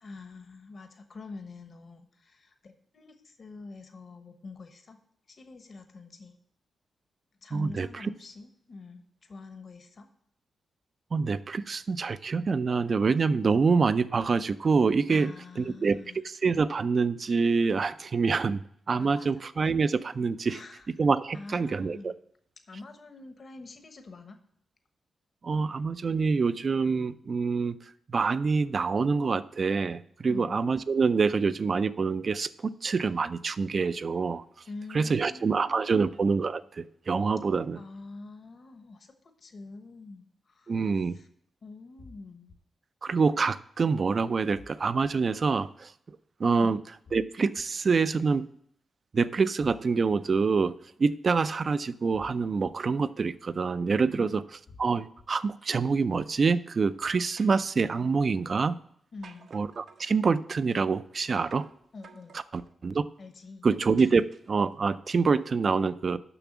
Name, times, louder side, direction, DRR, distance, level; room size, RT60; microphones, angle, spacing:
voice 1, 0.0-5.0 5.3-6.3 7.4-10.1 15.1-16.2 19.0-19.4 20.5-20.9 21.3-22.2 22.7-24.4 30.3-30.6 34.7-36.1 37.7-39.1 39.4-41.3 41.6-42.5 46.5-46.7 54.2-54.3 59.1-59.5 61.9-62.4 63.2-63.7, left 3 dB, 50° left, 7 dB, 1.1 m, -46 dB
voice 2, 7.5-8.1 11.1-16.0 16.4-18.6 18.9-20.6 21.0-22.1 25.4-27.8 28.1-34.4 34.9-37.8 40.7-41.2 43.0-45.9 46.4-46.8 47.1-48.5 49.1-54.4 54.8-58.8 59.5-61.7 62.3-63.0 63.6-66.2, right 4 dB, 50° right, 15 dB, 0.4 m, -26 dB
sound 1, 42.0-42.6 44.5-45.1 47.0-47.6 49.6-50.2 52.1-52.7 54.7-55.2, left 3 dB, 70° left, 1.5 m, -51 dB
sound 2, 57.0-57.7 59.2-60.1 61.5-61.8 62.0-62.7 64.0-64.7, right 5 dB, 75° right, 0.9 m, -51 dB
7.0 x 6.0 x 7.2 m, 0.67 s
cardioid pair, 85°, 0 cm